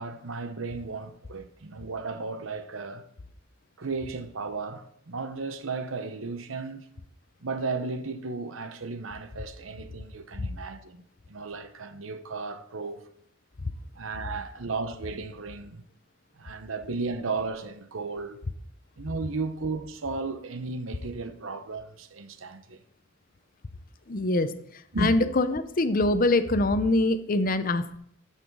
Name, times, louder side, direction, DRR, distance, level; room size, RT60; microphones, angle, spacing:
voice 1, 0.0-3.1 3.8-6.9 7.4-11.0 11.3-13.0 13.9-15.8 16.4-18.4 19.0-22.8 24.9-25.1, right 3 dB, 90° right, 0.9 m, -34 dB
voice 2, 24.1-24.5 25.0-28.0, left 2 dB, 45° left, 0.7 m, -24 dB
13.0 x 5.8 x 4.7 m
head